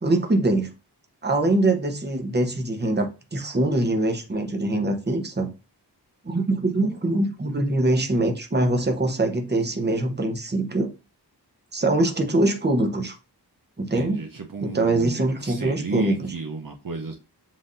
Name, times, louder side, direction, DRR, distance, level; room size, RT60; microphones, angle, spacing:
voice 1, 0.0-0.7 1.2-5.5 6.2-10.9 11.7-13.1 13.8-14.2 14.6-16.3, right 2 dB, 25° right, 0.8 m, -23 dB
voice 2, 13.9-17.1, right 3 dB, 55° right, 0.7 m, -33 dB
7.4 x 2.6 x 2.6 m
wide cardioid pair, 70°, 41 cm